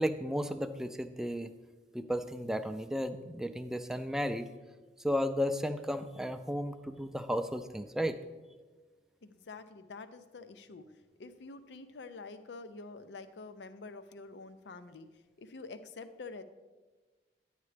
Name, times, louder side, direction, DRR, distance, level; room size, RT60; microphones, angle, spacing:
voice 1, 0.0-1.5 1.9-4.5 5.0-8.2, equal, 5° right, 9 dB, 0.3 m, -34 dB
voice 2, 9.2-10.9 11.2-15.1 15.4-16.4, left 3 dB, 80° left, 11 dB, 0.5 m, -47 dB
11.0 x 8.2 x 3.3 m, 1.3 s
head